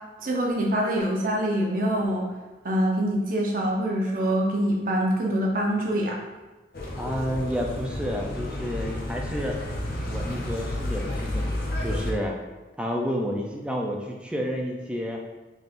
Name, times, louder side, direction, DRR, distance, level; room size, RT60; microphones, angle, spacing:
voice 1, 0.2-2.3 2.6-6.1, right 1 dB, 50° right, -1 dB, 0.7 m, -25 dB
sound 1, 6.7-12.1, left 1 dB, 55° left, 0.5 m, -31 dB
voice 2, 7.0-9.6 10.1-11.5 11.8-12.4 12.8-15.2, equal, 5° right, 0 dB, 0.4 m, -30 dB
4.2 x 3.4 x 2.5 m, 1.2 s
head